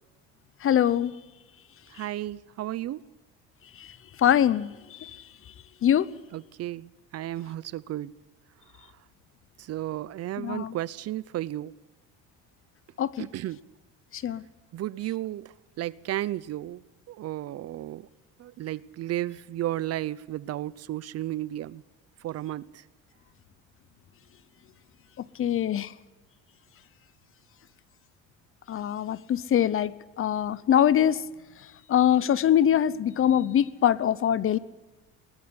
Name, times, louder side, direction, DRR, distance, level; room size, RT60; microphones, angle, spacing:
voice 1, 0.6-1.1 4.2-5.1 5.8-6.1 10.4-10.7 13.0-13.3 14.1-14.4 25.2-25.9 28.7-31.2 31.9-34.6, left 10 dB, 40° left, 20 dB, 0.8 m, -23 dB
voice 2, 1.9-3.0 6.3-8.1 9.6-11.7 13.2-13.6 14.7-16.8 17.1-18.1 18.4-21.8 22.2-22.8, right 14 dB, 50° right, 22 dB, 0.6 m, -33 dB
20.0 x 13.5 x 9.6 m, 1.1 s
cardioid pair, 105°, 32 cm